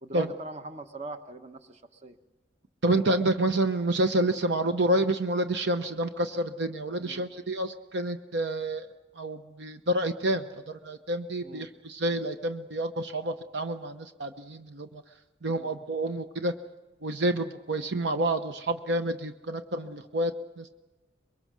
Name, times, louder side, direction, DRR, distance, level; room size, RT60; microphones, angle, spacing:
voice 1, 0.0-2.2 7.0-7.3 11.4-11.7 15.5-15.8, right 1 dB, 35° right, 8 dB, 1.1 m, -42 dB
voice 2, 2.8-8.9 9.2-15.0 15.4-16.5 17.0-20.7, right 1 dB, 65° right, 8 dB, 0.9 m, -29 dB
24.0 x 22.5 x 6.2 m, 1.2 s
head